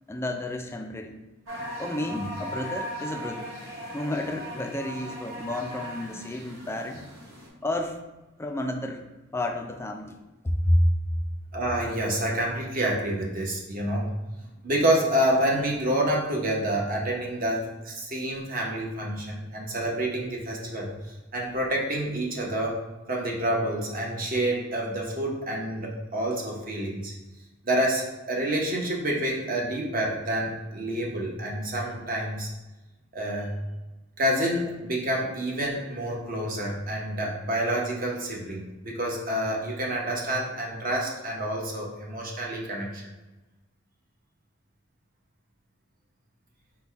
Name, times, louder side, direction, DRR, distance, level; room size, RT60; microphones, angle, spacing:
voice 1, 0.1-1.2 1.8-3.5 3.9-7.0 7.6-8.0 8.4-9.0 9.3-10.2 10.4-10.8 11.1-11.2, left 1 dB, 15° left, 3 dB, 0.3 m, -30 dB
sound 1, 1.5-7.5, equal, 80° right, 1.4 m, -38 dB
voice 2, 11.5-14.0 14.6-22.7 23.1-27.1 27.6-28.0 28.3-32.5 33.1-33.5 34.2-43.0, right 1 dB, 45° right, -2 dB, 0.9 m, -28 dB
4.1 x 2.2 x 4.5 m, 1.1 s
head